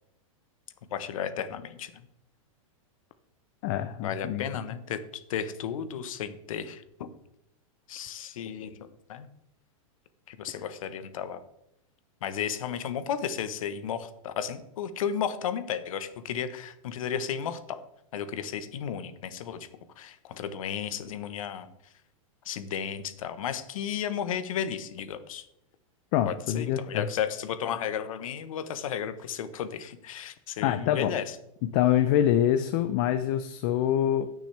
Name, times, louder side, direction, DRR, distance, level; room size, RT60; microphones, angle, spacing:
voice 1, 0.9-2.0 4.0-6.8 7.9-9.3 10.3-11.4 12.2-17.8 18.1-19.7 20.0-21.7 22.4-25.5 26.3-31.3, left 8 dB, 70° left, 11 dB, 1.1 m, -33 dB
voice 2, 3.6-4.5 26.1-27.1 30.6-31.1 31.7-34.3, left 11 dB, 40° left, 8 dB, 0.6 m, -25 dB
17.5 x 6.2 x 3.4 m, 0.77 s
supercardioid pair, 155°, 18 cm